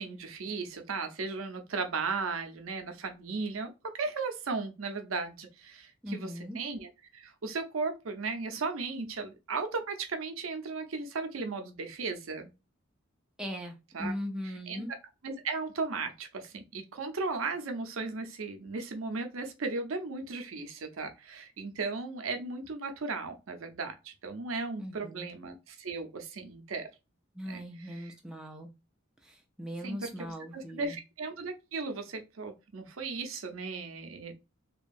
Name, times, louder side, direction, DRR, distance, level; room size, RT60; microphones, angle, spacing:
voice 1, 0.0-3.7 4.0-12.5 13.9-14.1 14.7-14.8 15.2-26.9 27.5-28.1 29.8-34.3, right 4 dB, 85° right, 0.6 m, -36 dB
voice 2, 6.0-6.6 13.4-14.9 24.8-25.3 27.3-28.7 29.2-31.0, equal, 5° right, 0.5 m, -39 dB
2.9 x 2.3 x 2.5 m
head